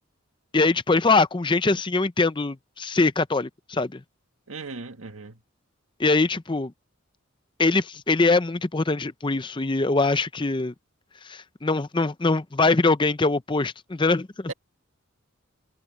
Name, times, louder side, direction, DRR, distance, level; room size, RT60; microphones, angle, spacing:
voice 1, 0.5-4.0 6.0-6.7 7.6-10.7 11.3-14.5, left 3 dB, 25° left, 0.6 m, -23 dB
voice 2, 4.5-5.4, right 3 dB, 80° right, 1.9 m, -38 dB
head